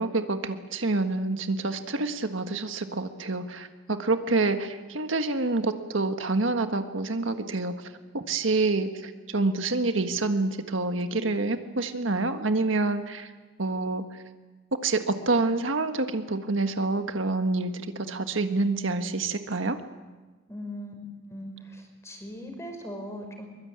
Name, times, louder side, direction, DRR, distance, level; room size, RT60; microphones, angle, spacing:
voice 1, 0.0-13.3 13.6-14.0 14.8-19.8, right 3 dB, 80° right, 7 dB, 1.6 m, -27 dB
voice 2, 20.5-20.9 21.3-23.5, equal, 15° left, 4 dB, 4.9 m, -39 dB
23.0 x 22.0 x 8.8 m, 1.3 s
head